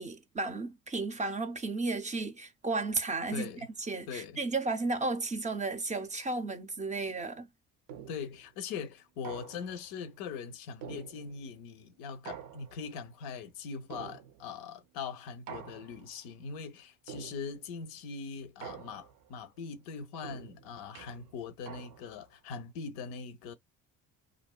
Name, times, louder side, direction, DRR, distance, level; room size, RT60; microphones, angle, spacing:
voice 1, 0.0-3.5 3.9-7.5, right 3 dB, 20° right, 0.4 m, -33 dB
voice 2, 3.3-3.7 4.1-4.4 8.1-23.5, left 5 dB, 85° left, 0.6 m, -41 dB
sound 1, 7.9-8.4 9.2-9.9 10.8-11.6 12.2-13.0 13.9-14.6 15.5-16.2 17.1-17.7 18.6-19.3 20.2-22.3, right 8 dB, 75° right, 0.5 m, -47 dB
2.5 x 2.2 x 2.2 m
supercardioid pair, 75°, 36 cm